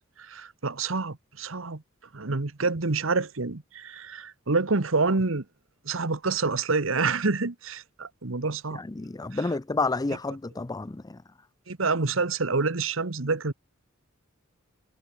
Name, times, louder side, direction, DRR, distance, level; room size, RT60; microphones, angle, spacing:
voice 1, 0.2-1.8 2.1-5.4 5.8-8.8 9.3-9.4 11.7-13.5, right 3 dB, 70° right, 1.3 m, -27 dB
voice 2, 8.7-11.2, left 3 dB, 20° left, 0.5 m, -30 dB
head